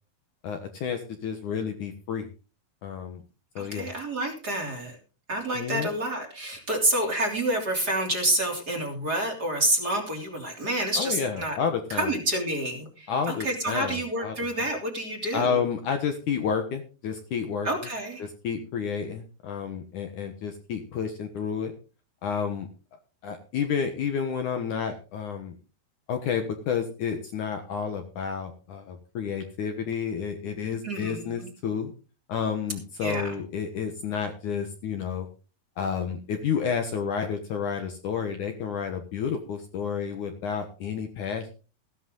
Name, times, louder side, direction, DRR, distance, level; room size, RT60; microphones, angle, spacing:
voice 1, 0.4-2.3 2.8-3.2 3.6-3.9 5.5-5.9 11.0-12.1 13.1-14.4 15.3-17.7 18.2-21.7 22.2-22.7 23.2-25.6 26.1-31.9 32.3-35.3 35.8-41.5, left 6 dB, 60° left, 6 dB, 2.4 m, -30 dB
voice 2, 3.6-5.0 5.3-11.6 11.9-15.6 17.6-18.3 30.8-31.5 33.0-33.4, right 1 dB, 25° right, 1 dB, 3.3 m, -28 dB
16.0 x 11.5 x 3.9 m, 0.35 s
omnidirectional pair, 4.5 m